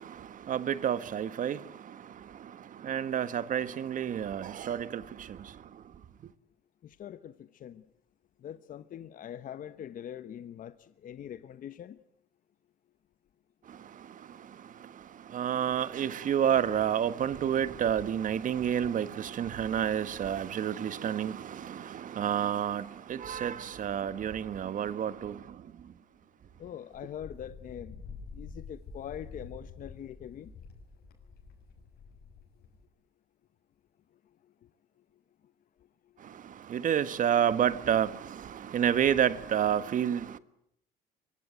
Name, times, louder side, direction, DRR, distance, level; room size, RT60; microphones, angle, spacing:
voice 1, 0.0-5.9 13.6-25.9 36.2-40.4, right 9 dB, 50° right, 1.5 m, -30 dB
voice 2, 6.8-7.8 8.4-12.0 26.6-28.0 28.3-30.5, left 10 dB, 50° left, 1.0 m, -43 dB
Wind, 26.9-32.8, left 4 dB, 70° left, 6.9 m, -48 dB
24.0 x 23.5 x 9.3 m
cardioid pair, 110°, 17 cm